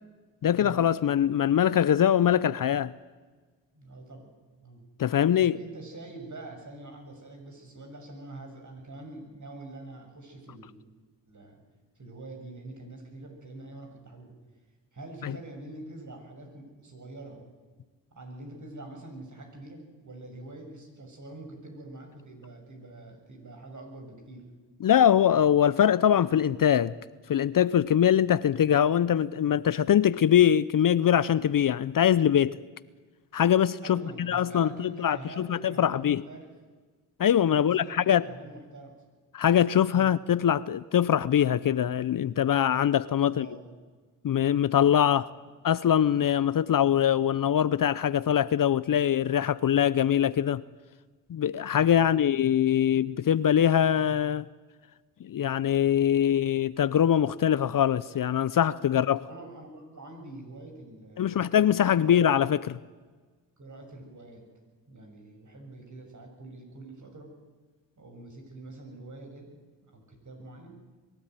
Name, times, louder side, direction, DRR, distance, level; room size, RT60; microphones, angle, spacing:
voice 1, 0.4-2.9 5.0-5.6 15.2-15.3 24.8-26.9 27.3-32.6 33.3-36.2 37.2-38.2 39.3-43.5 44.2-45.3 45.6-50.6 51.3-54.5 55.2-59.2 61.2-62.6, left 9 dB, 50° left, 0.7 m, -23 dB
voice 2, 3.7-4.3 4.6-4.8 5.4-10.7 11.3-11.6 11.9-14.3 14.9-17.5 18.1-24.5 33.8-36.5 37.5-39.0 39.9-40.1 43.2-43.7 45.4-45.5 51.9-52.3 58.7-58.9 59.2-62.2 63.6-64.4 64.9-67.3 68.0-69.6 69.8-70.8, right 2 dB, 40° right, 6.8 m, -45 dB
22.5 x 13.0 x 9.3 m
supercardioid pair, 55°, 43 cm